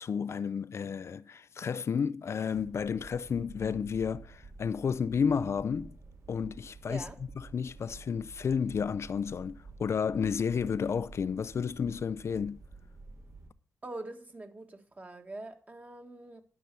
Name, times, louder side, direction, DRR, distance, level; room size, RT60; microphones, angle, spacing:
voice 1, 0.0-6.0 6.3-7.1 7.4-12.6, left 6 dB, 55° left, 0.4 m, -31 dB
sound 1, 2.5-13.5, right 3 dB, 60° right, 2.5 m, -50 dB
voice 2, 13.8-16.4, right 2 dB, 30° right, 1.8 m, -44 dB
12.0 x 5.8 x 6.8 m
cardioid pair, 75°, 6 cm